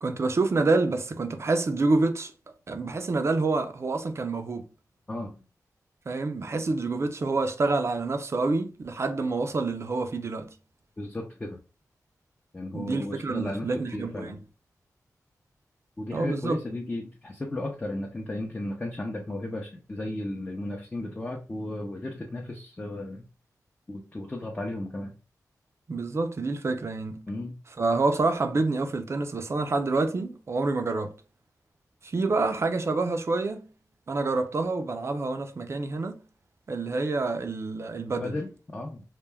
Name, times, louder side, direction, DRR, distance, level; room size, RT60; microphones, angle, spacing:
voice 1, 0.0-2.3 2.7-4.6 6.1-10.5 12.7-14.4 16.1-16.6 25.9-27.3 27.8-31.2 32.0-33.7 34.1-36.2 36.7-38.4, right 3 dB, 45° right, 0.4 m, -27 dB
voice 2, 11.0-11.6 12.5-14.4 16.0-23.3 23.9-25.1 27.3-27.5 38.2-39.0, left 1 dB, 20° left, 0.5 m, -34 dB
2.2 x 2.1 x 3.3 m
wide cardioid pair, 75°, 6 cm